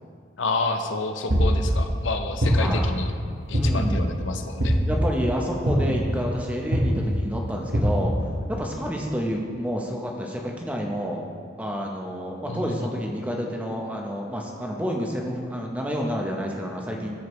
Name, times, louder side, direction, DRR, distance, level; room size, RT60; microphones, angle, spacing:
voice 1, 0.4-3.1 3.5-4.8 12.5-12.8, left 3 dB, 80° left, 6 dB, 0.6 m, -29 dB
sound 1, 1.3-1.7 2.4-2.9 3.5-4.0 4.6-5.0 5.7-6.1 6.7-7.0 7.7-8.1, equal, 65° right, 1.2 m, -22 dB
voice 2, 2.5-2.9 3.5-4.1 4.9-11.3 11.6-17.2, equal, 5° right, 0 dB, 0.7 m, -29 dB
14.0 x 4.9 x 3.1 m, 2.1 s
head